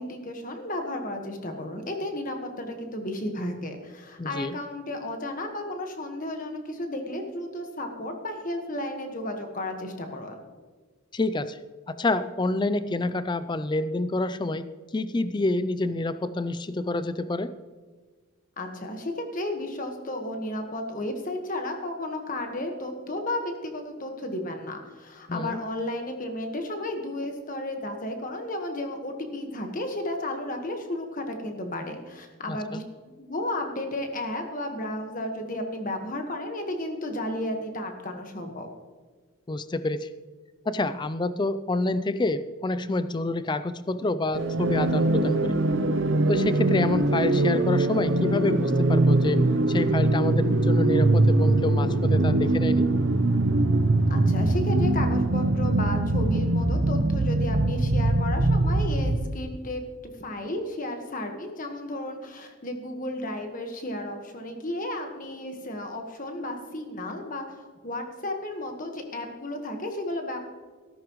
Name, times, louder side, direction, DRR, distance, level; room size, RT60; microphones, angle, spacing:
voice 1, 0.0-10.4 18.6-32.8 33.2-38.7 54.1-59.8 60.2-67.5 67.8-70.4, left 1 dB, 40° left, 4 dB, 1.4 m, -33 dB
voice 2, 4.2-4.6 11.1-11.6 11.9-14.7 14.9-17.5 25.3-25.6 32.5-32.8 39.5-40.1 40.7-45.6 46.3-49.4 49.7-52.9, left 2 dB, 20° left, 13 dB, 0.4 m, -28 dB
sound 1, 44.3-59.3, right 2 dB, 60° right, 0.7 m, -22 dB
14.0 x 12.5 x 3.1 m, 1.4 s
head